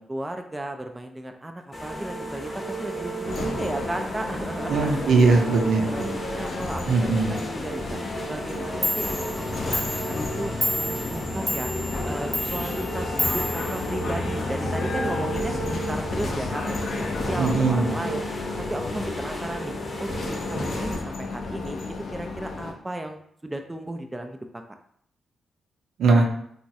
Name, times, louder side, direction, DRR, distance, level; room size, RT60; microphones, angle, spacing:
voice 1, 0.0-5.1 5.7-6.1 6.4-8.0 8.3-9.1 9.5-11.7 12.0-18.2 18.7-19.7 20.0-21.8 22.1-23.2 23.4-24.6, right 1 dB, 20° right, 5 dB, 0.3 m, -35 dB
sound 1, 1.7-21.0, right 1 dB, 30° left, 0.7 m, -34 dB
sound 2, 3.2-22.7, left 3 dB, 65° left, 0.5 m, -32 dB
voice 2, 4.7-6.1 6.9-7.4 17.4-17.9 26.0-26.2, right 4 dB, 80° right, 1 dB, 0.5 m, -20 dB
Clock, 8.5-8.6 8.8-14.5, left 1 dB, ahead, 0.8 m, -31 dB
3.0 x 2.3 x 2.6 m, 0.68 s
cardioid pair, 60°, 0 cm